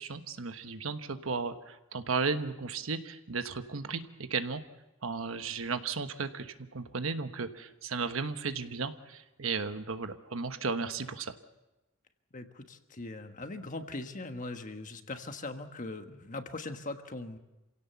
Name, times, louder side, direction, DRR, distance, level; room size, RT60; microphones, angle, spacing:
voice 1, 0.0-4.6 5.0-11.3, right 4 dB, 85° right, 9 dB, 1.2 m, -35 dB
voice 2, 12.3-17.4, left 2 dB, 40° left, 7 dB, 1.4 m, -40 dB
27.5 x 17.0 x 7.0 m, 1.0 s
head